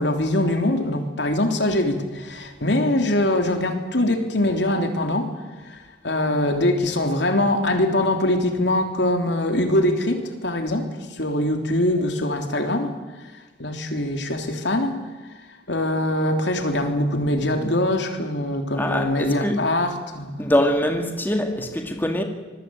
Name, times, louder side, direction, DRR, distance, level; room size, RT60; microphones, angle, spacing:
voice 1, 0.0-12.9 13.6-15.0 15.7-20.4, left 1 dB, 70° left, 3.4 m, -23 dB
voice 2, 18.7-19.7 20.4-22.2, left 1 dB, 10° left, 2.0 m, -23 dB
25.5 x 22.0 x 8.9 m
head